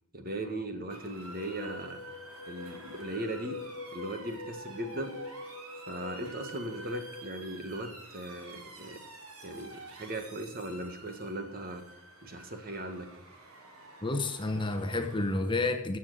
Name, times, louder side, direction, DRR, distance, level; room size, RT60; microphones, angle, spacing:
voice 1, 0.1-2.0 2.5-3.6 3.9-5.1 5.9-9.0 9.4-9.7 10.0-11.8 12.2-13.1, right 1 dB, 40° right, 6 dB, 1.6 m, -38 dB
Motor vehicle (road) / Siren, 0.9-15.4, right 2 dB, 80° right, 3.0 m, -49 dB
sound 1, 1.3-7.3, left 3 dB, 80° left, 1.3 m, -45 dB
voice 2, 14.0-16.0, left 2 dB, 20° left, 6 dB, 1.0 m, -30 dB
14.5 x 7.4 x 6.4 m, 0.85 s
head